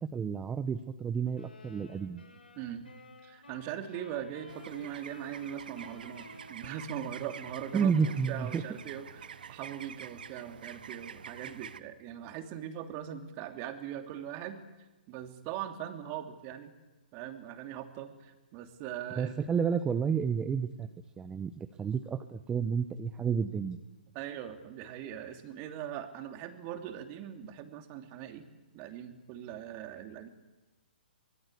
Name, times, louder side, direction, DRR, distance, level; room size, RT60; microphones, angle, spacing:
voice 1, 0.0-2.2 7.7-8.6 19.2-20.9 21.2-23.8, right 6 dB, 15° right, 10 dB, 1.1 m, -31 dB
sound 1, 1.3-9.3, left 3 dB, 80° left, 6.1 m, -54 dB
voice 2, 2.6-2.9 3.2-14.6 15.1-16.7 17.1-19.5 24.1-28.4 28.7-30.3, right 10 dB, 30° right, 6 dB, 2.9 m, -41 dB
sound 2, 4.5-11.8, right 7 dB, 60° right, 1.2 m, -47 dB
24.5 x 23.0 x 8.5 m, 1.1 s
figure-of-eight pair, 125°, 5 cm